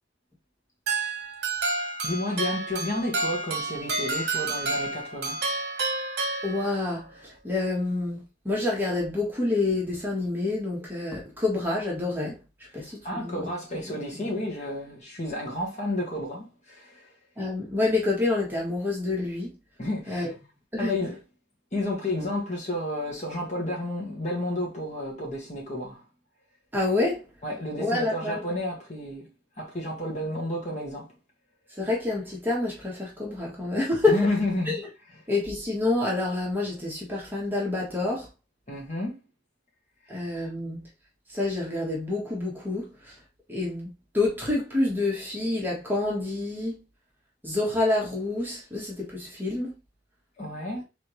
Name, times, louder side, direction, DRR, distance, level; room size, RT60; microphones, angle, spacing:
sound 1, 0.9-7.0, right 3 dB, 65° right, 1.0 m, -30 dB
voice 1, 2.0-5.5 12.7-17.1 19.8-20.3 20.8-21.2 21.7-26.0 27.4-29.3 29.6-31.1 34.1-34.8 38.7-39.2 50.4-50.8, left 1 dB, 40° left, 1.7 m, -31 dB
voice 2, 6.4-12.4 12.7-13.5 17.4-19.5 20.1-20.3 20.7-21.0 26.7-27.2 27.8-28.4 31.8-34.2 34.7-34.8 35.3-38.3 40.1-40.9 41.3-43.1 43.5-46.8 47.4-49.7, left 2 dB, 10° right, 1.4 m, -28 dB
3.9 x 3.5 x 3.1 m
head